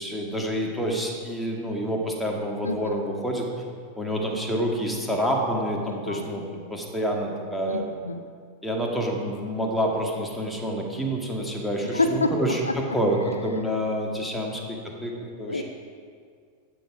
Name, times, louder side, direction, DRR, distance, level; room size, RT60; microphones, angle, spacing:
voice 1, 0.0-3.5 4.0-6.4 6.7-7.8 8.6-12.6 12.9-15.1 15.4-15.6, equal, ahead, -1 dB, 2.1 m, -27 dB
voice 2, 2.6-3.0 6.0-6.3 7.7-8.2 11.9-12.8 13.5-13.6 14.4-14.6 15.3-15.6, left 2 dB, 80° left, 8 dB, 0.6 m, -28 dB
13.0 x 9.3 x 4.9 m, 2.1 s
figure-of-eight pair, 90°, 0 cm